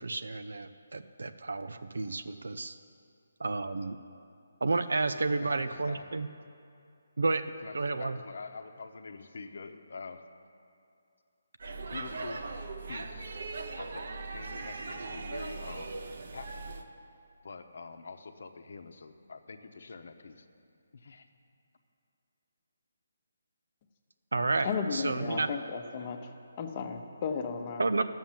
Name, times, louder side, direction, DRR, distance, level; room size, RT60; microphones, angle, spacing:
voice 1, 0.0-2.7 3.4-4.0 4.6-6.3 7.2-7.4 7.7-8.2 24.3-25.5 27.8-28.0, right 3 dB, 80° right, 10 dB, 0.5 m, -31 dB
voice 2, 5.4-6.1 7.6-10.2 11.9-12.4 12.9-13.3 13.8-16.0 16.3-16.7 17.4-20.3 21.0-21.2, left 4 dB, 65° left, 8 dB, 0.9 m, -45 dB
Speech / Shout / Subway metro underground, 11.6-16.8, right 3 dB, 60° right, 0.9 m, -39 dB
voice 3, 24.6-26.2 26.6-27.9, left 5 dB, 30° left, 5 dB, 0.9 m, -34 dB
11.5 x 7.3 x 7.4 m, 2.4 s
hypercardioid pair, 165°, 0 cm